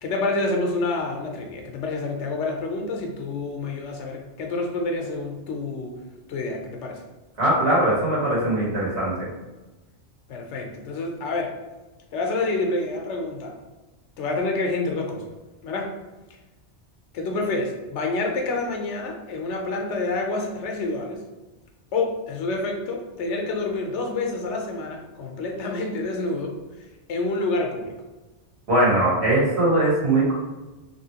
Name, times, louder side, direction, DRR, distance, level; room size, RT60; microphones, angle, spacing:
voice 1, 0.0-6.0 6.3-7.0 10.3-11.6 12.1-13.6 14.2-15.3 15.6-15.9 17.1-21.2 21.9-26.5 26.8-28.0, left 3 dB, 85° left, 2 dB, 0.9 m, -28 dB
voice 2, 7.4-9.3 28.7-30.3, right 1 dB, 70° right, -6 dB, 1.5 m, -20 dB
3.1 x 2.7 x 2.8 m, 1.1 s
omnidirectional pair, 1.2 m